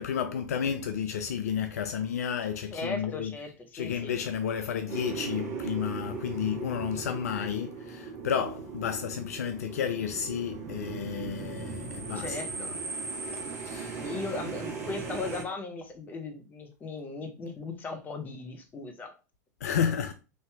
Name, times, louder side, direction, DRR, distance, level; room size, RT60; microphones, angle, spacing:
voice 1, 0.0-3.3 3.7-12.4 13.7-14.0 19.6-20.1, left 8 dB, 60° left, 0.3 m, -31 dB
voice 2, 2.7-4.1 12.2-12.8 14.0-19.2 19.6-19.8, left 3 dB, 20° left, 0.6 m, -38 dB
sound 1, 4.9-15.4, right 4 dB, 35° right, 0.8 m, -38 dB
3.2 x 2.7 x 2.2 m
figure-of-eight pair, 90°, 9 cm